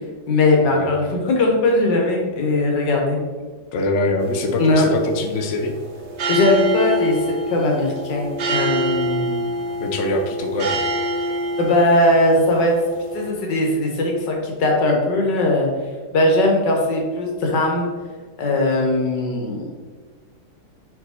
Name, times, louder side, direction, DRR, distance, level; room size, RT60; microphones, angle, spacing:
voice 1, 0.3-3.2 4.6-4.9 6.3-7.2 7.5-9.4 11.6-12.7 13.1-15.7 16.1-17.9 18.4-19.8, left 2 dB, 65° left, 0 dB, 1.7 m, -19 dB
voice 2, 3.7-5.7 9.8-10.8, left 2 dB, 85° left, 4 dB, 0.6 m, -23 dB
sound 1, 4.2-13.3, right 1 dB, 80° right, 0.6 m, -26 dB
4.7 x 4.6 x 4.2 m, 1.5 s
omnidirectional pair, 2.2 m